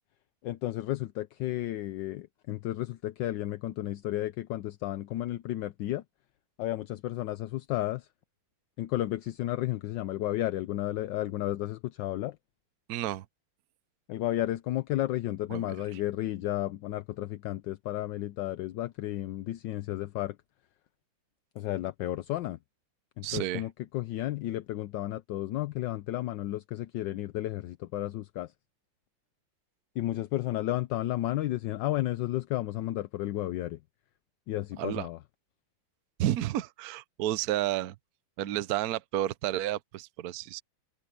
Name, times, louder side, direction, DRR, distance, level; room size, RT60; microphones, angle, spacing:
voice 1, 0.4-6.0 6.6-8.1 8.8-12.4 14.1-20.4 21.6-22.6 23.2-28.5 30.0-33.8 34.5-35.2, left 15 dB, 75° left, 1.3 m, -32 dB
voice 2, 12.9-13.2 15.5-15.6 15.9-16.0 23.2-23.6 34.8-35.1 36.2-37.9 38.4-40.6, right 13 dB, 65° right, 1.0 m, -31 dB
omnidirectional pair, 2.1 m